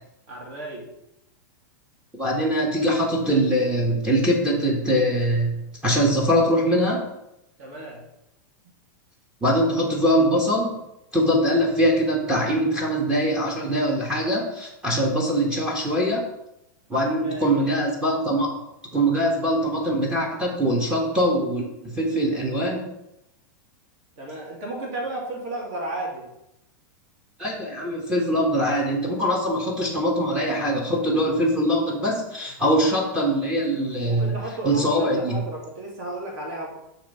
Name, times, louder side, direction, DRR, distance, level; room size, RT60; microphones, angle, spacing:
voice 1, 0.3-0.9 7.6-8.0 16.9-17.7 24.2-26.3 32.6-32.7 34.0-36.7, right 1 dB, 45° right, -2 dB, 2.4 m, -34 dB
voice 2, 2.1-5.5 5.8-7.0 9.4-10.8 11.1-16.3 16.9-18.5 18.9-22.9 27.4-34.3 34.6-35.4, equal, 10° right, -3 dB, 1.0 m, -22 dB
6.5 x 3.3 x 5.3 m, 0.84 s
supercardioid pair, 150°, 11 cm